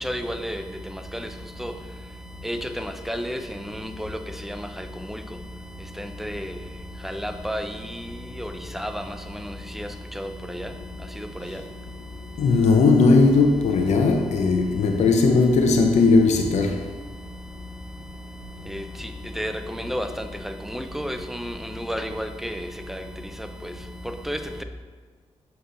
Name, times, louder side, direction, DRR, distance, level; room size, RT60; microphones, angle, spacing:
voice 1, 0.0-0.6 1.1-1.3 1.6-1.7 2.4-3.4 3.7-4.2 4.5-5.2 6.0-6.5 7.0-7.7 8.4-9.0 9.8-9.9 10.2-10.3 10.5-10.7 18.7-18.8 19.4-20.1 20.7-23.0 24.3-24.6, equal, ahead, 7 dB, 0.5 m, -31 dB
voice 2, 12.4-16.8, left 3 dB, 80° left, 3 dB, 0.5 m, -18 dB
6.4 x 3.0 x 5.3 m, 1.4 s
cardioid pair, 55°, 11 cm